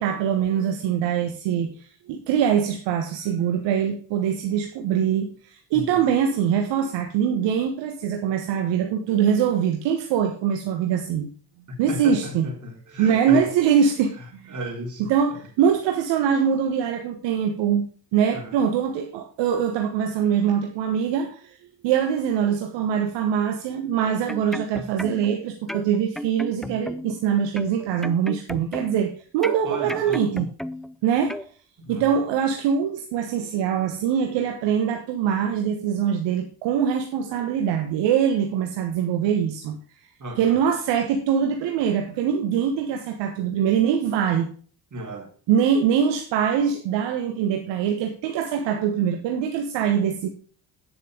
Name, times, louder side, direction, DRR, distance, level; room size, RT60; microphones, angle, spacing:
voice 1, 0.0-1.7 2.1-11.3 11.8-12.5 13.0-14.6 15.0-21.5 21.8-30.5 31.0-31.4 31.9-39.8 40.4-44.5 45.5-50.3, right 8 dB, 65° right, 1.3 m, -23 dB
voice 2, 5.7-6.1 11.7-13.5 14.2-15.1 18.3-18.6 29.6-30.2 31.8-32.1 40.2-40.6 44.9-45.3, right 1 dB, 40° right, 3.6 m, -34 dB
sound 1, 24.1-25.4 25.7-27.2 27.6-29.1 29.4-31.0 31.3-31.5, equal, ahead, 0.4 m, -34 dB
9.4 x 7.2 x 5.1 m
hypercardioid pair, 60°, 46 cm